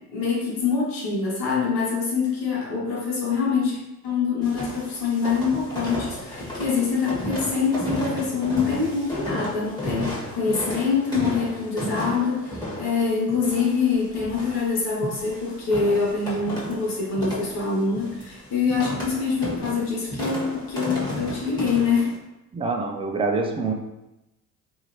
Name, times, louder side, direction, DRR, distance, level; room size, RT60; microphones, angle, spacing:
voice 1, 0.1-22.1, left 5 dB, 65° left, -5 dB, 1.3 m, -25 dB
sound 1, 4.4-22.1, left 1 dB, 10° left, 1.4 m, -34 dB
voice 2, 22.5-23.7, right 3 dB, 15° right, 2 dB, 0.4 m, -25 dB
2.9 x 2.8 x 2.6 m, 0.95 s
hypercardioid pair, 65°, 42 cm